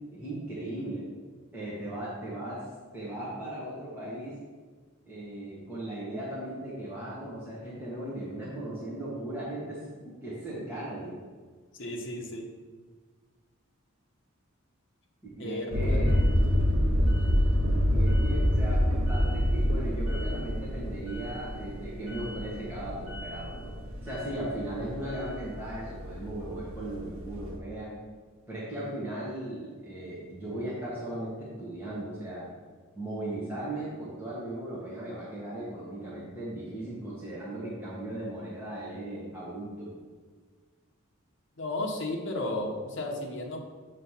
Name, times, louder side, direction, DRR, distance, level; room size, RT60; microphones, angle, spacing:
voice 1, 0.1-1.1 1.5-2.6 2.9-4.4 5.1-11.2 15.4-16.3 17.9-23.7 24.0-27.9 28.5-32.5 32.9-39.9, right 1 dB, 10° right, -9 dB, 1.3 m, -37 dB
voice 2, 11.7-12.5 15.4-16.2 41.6-43.6, left 2 dB, 55° left, 0 dB, 1.0 m, -34 dB
sound 1, 15.7-27.6, equal, 75° right, 1.0 m, -27 dB
8.0 x 3.2 x 5.6 m, 1.5 s
head